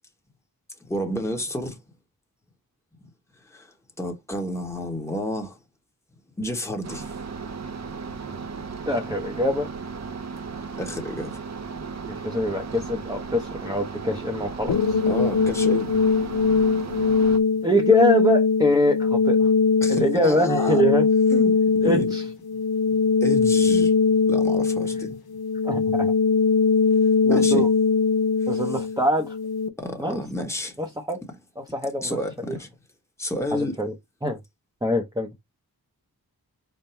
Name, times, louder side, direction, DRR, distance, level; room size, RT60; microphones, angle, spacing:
voice 1, 0.8-1.8 3.5-5.6 6.4-7.1 10.8-11.4 15.1-15.9 19.8-20.8 21.3-22.1 23.2-23.9 24.3-25.2 27.3-27.7 28.5-28.6 29.8-30.8 32.0-32.7 33.2-33.8, left 1 dB, 5° left, 1.1 m, -30 dB
sound 1, 6.8-17.4, right 5 dB, 45° right, 0.7 m, -35 dB
voice 2, 8.9-9.7 12.1-15.0 17.6-19.5 19.9-21.1 21.8-22.2 25.6-26.1 27.2-27.7 28.5-29.4 30.0-30.2 30.8-31.2 31.6-32.2 33.8-33.9 34.2-34.4 34.8-35.3, left 1 dB, 10° right, 0.8 m, -23 dB
sound 2, 14.7-29.7, left 5 dB, 80° left, 0.8 m, -21 dB
5.4 x 2.2 x 4.3 m
wide cardioid pair, 115°, 37 cm